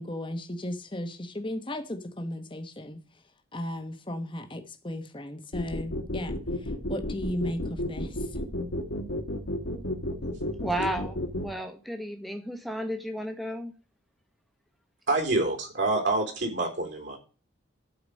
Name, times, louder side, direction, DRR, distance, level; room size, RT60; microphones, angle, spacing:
voice 1, 0.0-3.0 3.5-6.3 6.9-8.2, left 1 dB, 25° left, 1.0 m, -35 dB
sound 1, 5.5-11.5, left 1 dB, 80° left, 1.6 m, -31 dB
voice 2, 10.6-13.7, right 1 dB, ahead, 1.1 m, -33 dB
voice 3, 15.1-17.2, right 2 dB, 60° right, 3.5 m, -27 dB
12.0 x 4.9 x 6.3 m
head